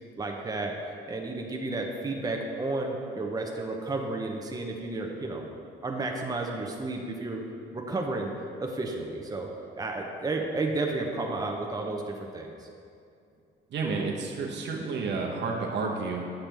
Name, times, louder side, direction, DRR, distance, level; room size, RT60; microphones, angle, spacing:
voice 1, 0.2-0.8 1.1-5.5 5.8-7.4 7.7-8.3 8.6-12.7, right 2 dB, 20° right, 1 dB, 0.8 m, -32 dB
voice 2, 13.7-16.3, right 4 dB, 60° right, -1 dB, 0.9 m, -30 dB
8.9 x 5.8 x 3.4 m, 2.5 s
cardioid pair, 90°, 20 cm